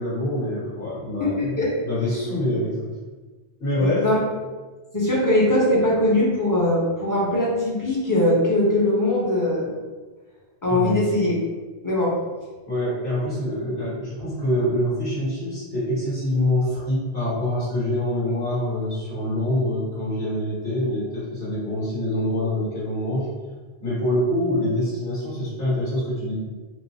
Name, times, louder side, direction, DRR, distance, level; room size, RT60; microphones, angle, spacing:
voice 1, 0.0-1.6 1.8-2.9 3.6-4.1 10.6-11.0 12.7-23.3 23.8-26.3, left 1 dB, 60° left, -12 dB, 1.6 m, -25 dB
voice 2, 1.2-1.7 3.8-4.2 4.9-9.7 10.6-11.3 11.8-12.1, left 1 dB, 20° left, -5 dB, 0.7 m, -21 dB
4.5 x 2.0 x 2.7 m, 1.3 s
omnidirectional pair, 1.1 m